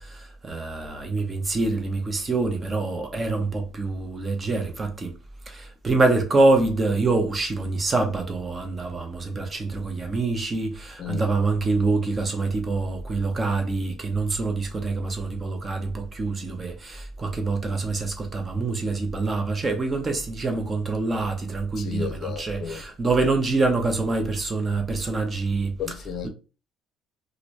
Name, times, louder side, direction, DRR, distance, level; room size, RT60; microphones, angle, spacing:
voice 1, 0.0-5.1 5.5-25.7, right 3 dB, 20° right, 0.7 m, -25 dB
voice 2, 11.0-11.4 21.8-22.9 25.8-26.3, left 8 dB, 45° left, 0.6 m, -33 dB
2.9 x 2.6 x 3.1 m
cardioid pair, 145°, 0 cm